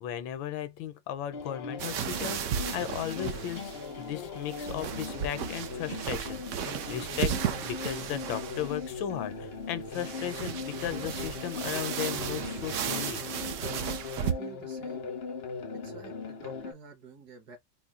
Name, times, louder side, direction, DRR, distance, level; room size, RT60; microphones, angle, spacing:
voice 1, 0.0-7.4 7.6-13.2, left 10 dB, 90° left, 1.4 m, -36 dB
sound 1, 1.3-16.7, left 5 dB, 60° left, 0.6 m, -39 dB
sound 2, 1.8-14.3, right 8 dB, 90° right, 0.6 m, -35 dB
voice 2, 14.1-15.1 15.7-17.6, right 5 dB, 60° right, 1.6 m, -49 dB
4.3 x 2.1 x 3.5 m
omnidirectional pair, 2.0 m